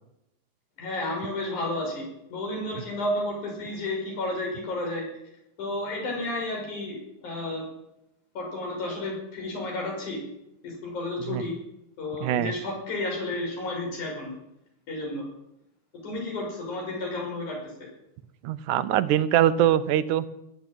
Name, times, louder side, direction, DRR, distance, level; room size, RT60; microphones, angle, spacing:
voice 1, 0.8-5.1 5.6-7.6 8.4-10.2 10.6-11.6 12.0-14.3 14.9-15.3 16.0-17.9, left 2 dB, 85° left, 0 dB, 7.0 m, -32 dB
voice 2, 12.2-12.5 18.4-20.3, right 11 dB, 90° right, 14 dB, 2.3 m, -23 dB
20.0 x 8.1 x 8.9 m, 0.84 s
omnidirectional pair, 3.4 m